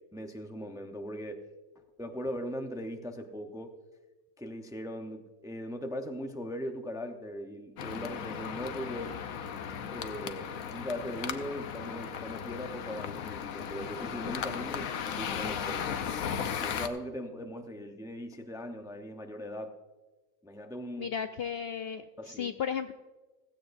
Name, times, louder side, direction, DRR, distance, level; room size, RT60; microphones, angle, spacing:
voice 1, 0.0-1.5 1.7-3.8 4.4-9.1 9.9-15.9 16.6-19.7 20.4-21.1 22.2-22.5, equal, 5° right, 5 dB, 0.6 m, -39 dB
sound 1, 7.8-16.9, left 8 dB, 85° left, 1.2 m, -36 dB
voice 2, 21.0-22.9, left 7 dB, 65° left, 8 dB, 0.6 m, -34 dB
16.0 x 16.0 x 2.6 m, 1.2 s
omnidirectional pair, 1.4 m